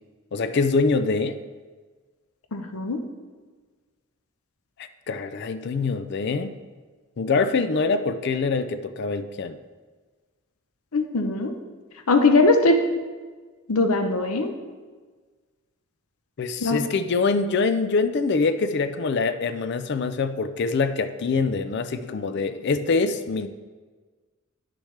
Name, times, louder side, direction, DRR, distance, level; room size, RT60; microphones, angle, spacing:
voice 1, 0.3-1.4 5.1-6.6 7.2-9.6 16.4-23.5, left 4 dB, 50° left, 11 dB, 0.4 m, -24 dB
voice 2, 2.5-3.0 10.9-11.5 12.1-12.8 13.7-14.5 16.6-16.8, left 2 dB, 90° left, 6 dB, 0.8 m, -20 dB
10.0 x 6.4 x 3.3 m, 1.4 s
head